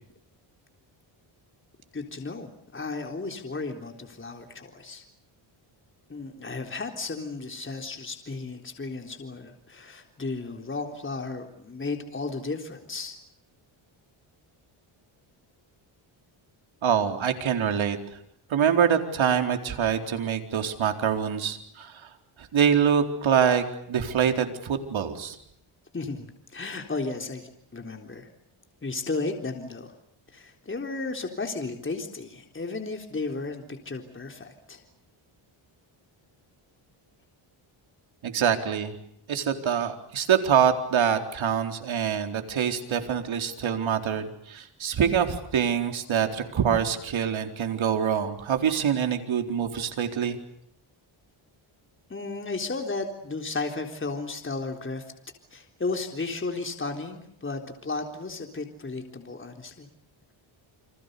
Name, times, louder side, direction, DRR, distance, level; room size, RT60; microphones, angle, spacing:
voice 1, 1.9-5.0 6.1-13.2 25.9-28.3 28.8-29.9 30.3-34.8 52.1-55.0 55.5-59.9, left 3 dB, 25° left, 4 dB, 3.9 m, -34 dB
voice 2, 16.8-18.0 18.5-22.1 22.4-25.4 38.2-39.0 39.3-50.4, right 8 dB, 70° right, 5 dB, 4.2 m, -25 dB
30.0 x 26.0 x 6.9 m, 0.71 s
cardioid pair, 105°, 49 cm